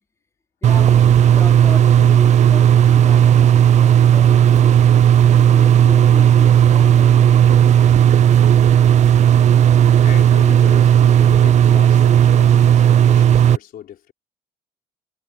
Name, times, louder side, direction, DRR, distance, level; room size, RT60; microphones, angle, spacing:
voice 1, 0.6-4.9 5.4-8.4, left 3 dB, 15° left, 3.5 m, -36 dB
sound 1, 0.6-13.6, right 9 dB, 45° right, 0.5 m, -12 dB
voice 2, 10.0-14.1, left 11 dB, 60° left, 4.3 m, -37 dB
cardioid pair, 110°, 17 cm